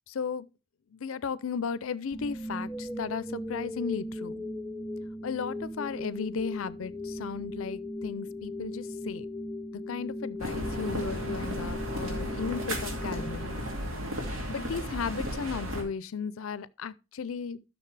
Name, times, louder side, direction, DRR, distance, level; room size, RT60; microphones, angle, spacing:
voice 1, 0.1-0.5 0.9-4.4 5.2-9.3 9.9-13.6 14.5-17.6, left 5 dB, 75° left, 0.5 m, -35 dB
sound 1, 2.1-14.2, left 1 dB, 10° left, 0.5 m, -38 dB
sound 2, 10.4-15.8, equal, 75° right, 2.3 m, -34 dB
12.5 x 6.3 x 3.3 m
head